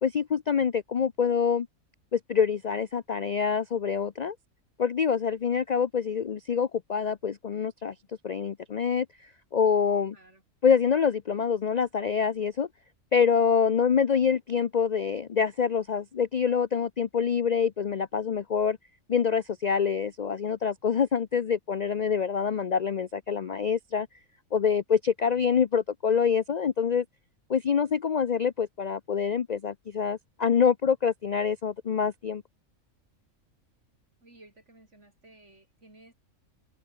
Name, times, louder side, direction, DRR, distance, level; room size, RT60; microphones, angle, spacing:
voice 1, 0.0-1.7 2.1-4.4 4.8-7.9 8.2-10.2 10.6-12.7 13.1-18.8 19.1-24.1 24.5-27.0 27.5-32.4, left 6 dB, 60° left, 0.4 m, -26 dB
voice 2, 34.2-36.1, right 2 dB, 50° right, 6.1 m, -55 dB
open air
omnidirectional pair, 1.5 m